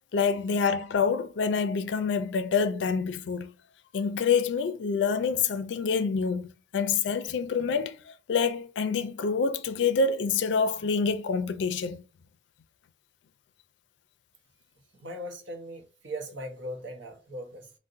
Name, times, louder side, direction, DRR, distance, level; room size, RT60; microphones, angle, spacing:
voice 1, 0.1-3.5 3.9-12.0, left 5 dB, 75° left, 0.3 m, -27 dB
voice 2, 14.9-17.7, equal, 80° right, 0.7 m, -39 dB
3.8 x 2.1 x 2.5 m
head